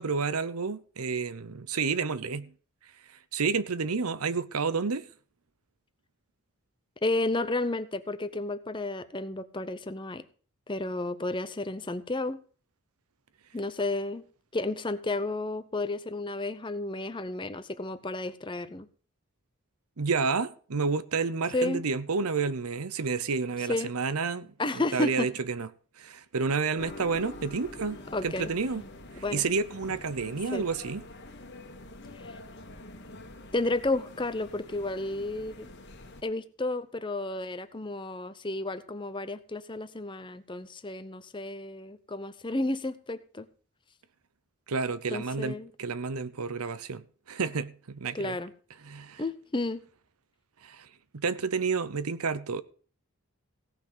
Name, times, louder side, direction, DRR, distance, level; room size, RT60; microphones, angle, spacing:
voice 1, 0.0-2.5 2.8-5.1 20.0-25.7 26.0-28.8 29.1-31.0 44.7-48.4 48.8-49.2 50.6-52.6, right 4 dB, 80° right, 0.8 m, -30 dB
voice 2, 7.0-10.2 10.7-12.4 13.5-14.2 14.5-18.9 21.5-21.8 23.7-23.9 24.6-25.3 28.1-28.5 29.2-29.4 30.5-30.6 32.2-32.4 33.5-35.7 36.2-43.5 45.1-45.7 48.1-48.5 49.2-49.8, left 2 dB, 20° left, 0.7 m, -32 dB
sound 1, 26.8-36.2, left 1 dB, 50° left, 1.6 m, -46 dB
16.5 x 6.0 x 6.8 m
head